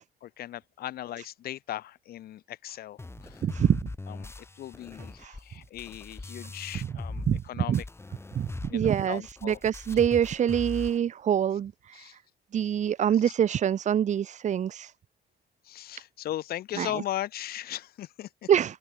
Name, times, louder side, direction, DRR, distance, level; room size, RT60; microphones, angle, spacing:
voice 1, 0.2-3.4 4.1-7.8 8.7-9.6 11.9-12.2 13.2-13.3 15.6-18.5, left 13 dB, 65° left, 2.1 m, -38 dB
sound 1, 3.0-7.5 7.7-11.0, left 2 dB, 15° left, 4.2 m, -40 dB
voice 2, 3.4-3.9 5.2-5.4 7.3-7.8 8.3-12.2 12.5-14.9 16.8-16.9 18.5-18.8, right 9 dB, 45° right, 1.1 m, -26 dB
open air
cardioid pair, 110°, 17 cm